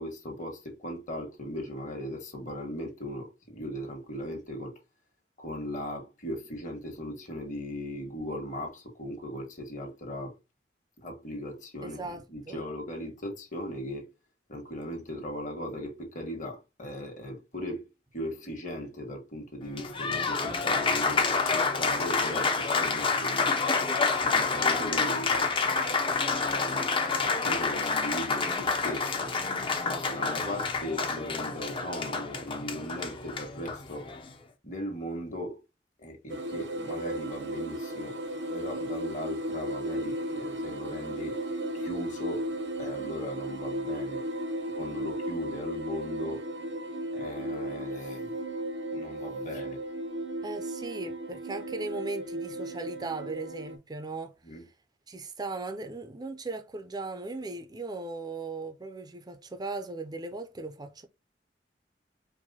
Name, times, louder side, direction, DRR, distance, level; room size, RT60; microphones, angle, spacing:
voice 1, 0.0-4.7 5.4-10.3 11.0-14.1 14.5-17.9 18.1-23.5 24.2-25.5 26.1-34.1 34.6-35.6 36.0-38.2 38.5-41.4 41.7-42.5 42.8-44.2 44.7-46.4 47.1-48.3 48.9-49.8 54.4-54.7, equal, 45° left, 1.4 m, -38 dB
voice 2, 11.8-12.6 50.4-54.3 55.1-61.1, right 3 dB, 25° right, 0.5 m, -38 dB
Applause, 19.6-34.3, left 4 dB, 30° left, 0.6 m, -28 dB
sound 1, 36.3-53.8, right 1 dB, 80° right, 0.8 m, -35 dB
4.7 x 2.2 x 4.0 m
head